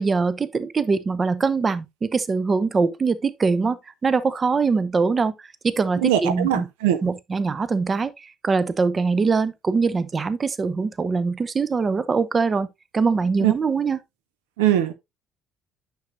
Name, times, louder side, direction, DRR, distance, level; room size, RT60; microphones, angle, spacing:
voice 1, 0.0-5.3 5.6-6.6 7.0-12.7 12.9-14.0, right 4 dB, 30° right, 0.7 m, -22 dB
voice 2, 6.0-7.0 13.4-13.5 14.6-14.9, right 11 dB, 75° right, 0.6 m, -21 dB
9.5 x 6.2 x 2.5 m
figure-of-eight pair, 55°, 0 cm